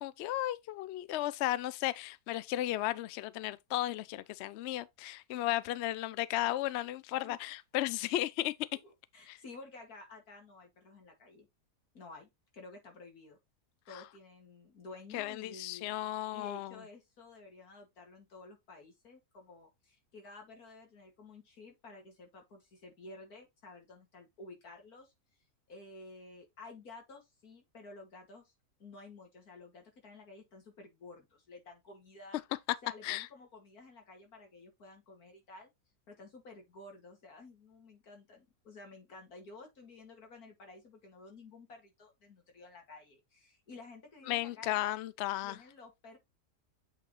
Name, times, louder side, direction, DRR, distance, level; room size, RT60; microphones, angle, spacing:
voice 1, 0.0-8.5 9.3-9.4 15.1-16.7 33.0-33.3 44.3-45.6, left 14 dB, 85° left, 0.5 m, -34 dB
voice 2, 8.8-11.5 11.9-13.4 13.9-16.0 16.3-25.1 25.7-28.5 28.8-32.4 32.8-35.7 36.1-44.9 45.4-46.2, left 3 dB, 65° left, 2.6 m, -52 dB
8.2 x 3.9 x 3.1 m
omnidirectional pair, 1.7 m